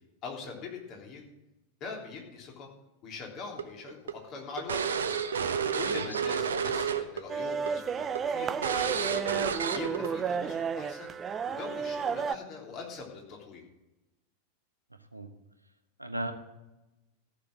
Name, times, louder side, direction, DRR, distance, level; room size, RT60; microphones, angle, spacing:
voice 1, 0.2-1.3 1.8-2.7 3.0-4.8 5.7-9.1 9.7-11.1 11.5-13.6, left 5 dB, 35° left, 0 dB, 3.4 m, -42 dB
sound 1, 3.6-7.2 7.5-7.7 8.1-8.2 8.6-10.1, right 6 dB, 65° right, 1.0 m, -30 dB
voice 2, 5.9-6.2 15.1-15.3 16.0-16.3, right 1 dB, 85° right, 7 dB, 1.2 m, -35 dB
sound 2, 7.3-12.3, right 6 dB, 20° right, 0.5 m, -32 dB
14.5 x 6.6 x 7.6 m, 0.98 s
figure-of-eight pair, 90°, 0 cm